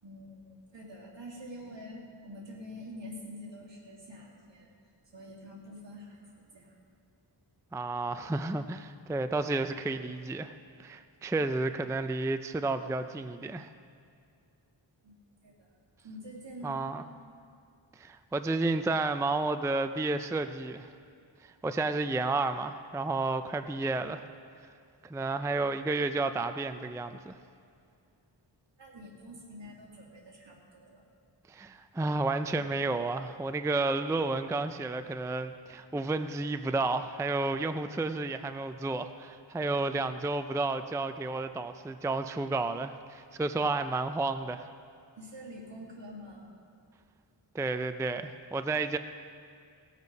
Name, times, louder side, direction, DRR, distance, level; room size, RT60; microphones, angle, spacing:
voice 1, 0.0-4.7 5.1-6.7 15.0-15.7 16.0-16.9 28.8-31.0 45.2-46.5, equal, 65° right, -2 dB, 2.3 m, -46 dB
voice 2, 7.7-10.5 10.8-13.7 16.6-17.0 18.0-20.9 21.4-24.2 25.0-27.3 31.5-44.7 47.5-49.0, right 3 dB, 5° right, 9 dB, 0.3 m, -31 dB
17.5 x 8.2 x 5.3 m, 2.4 s
wide cardioid pair, 70°, 46 cm